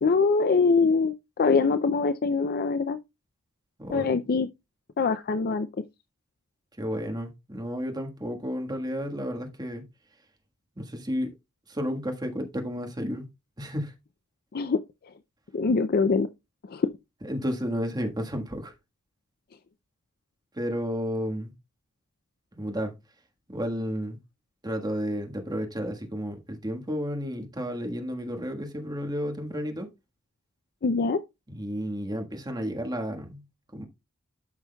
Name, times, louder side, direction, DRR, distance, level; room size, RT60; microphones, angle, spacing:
voice 1, 0.0-3.0 3.9-4.5 5.0-5.7 14.5-14.8 15.5-16.3 16.7-16.9 30.8-31.2, left 4 dB, 45° left, 0.4 m, -23 dB
voice 2, 3.8-4.2 6.8-9.9 10.8-11.3 11.7-13.3 13.6-13.9 17.2-18.7 20.5-21.5 22.6-22.9 23.5-24.2 24.6-29.9 31.5-33.4 33.7-33.9, equal, 20° right, 1.5 m, -32 dB
12.5 x 6.0 x 2.3 m
head